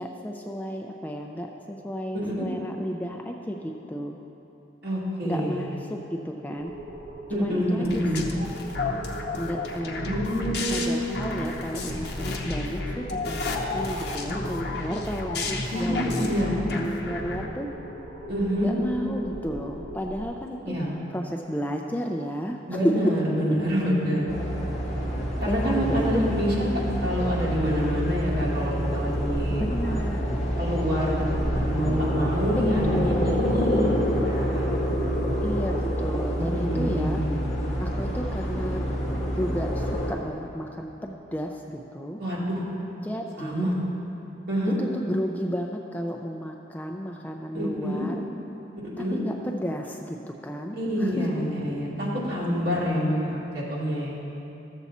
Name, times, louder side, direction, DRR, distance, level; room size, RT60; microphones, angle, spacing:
voice 1, 0.0-4.2 5.2-6.7 7.3-8.4 9.4-10.1 10.7-17.7 18.6-20.8 21.1-23.1 25.5-26.3 26.8-26.9 29.5-30.2 32.8-33.4 35.4-37.2 37.8-38.9 39.4-42.2 43.0-43.7 44.8-48.2 49.0-51.3, equal, 10° left, 1 dB, 0.4 m, -32 dB
voice 2, 2.1-2.5 4.8-5.7 7.3-8.2 10.0-11.0 15.7-16.7 18.3-18.7 20.7-20.9 22.7-24.3 25.4-26.7 27.0-30.0 30.6-33.9 34.2-34.7 36.3-37.4 42.2-42.6 43.4-43.8 44.5-44.8 47.5-48.1 49.0-49.2 50.8-54.2, equal, 55° right, -7 dB, 2.4 m, -27 dB
sound 1, 6.6-20.2, right 1 dB, 40° right, 2.2 m, -40 dB
sound 2, 7.8-17.5, left 3 dB, 60° left, 0.9 m, -32 dB
sound 3, 24.3-40.1, equal, 35° left, 1.6 m, -27 dB
13.5 x 7.1 x 4.2 m, 3.0 s
head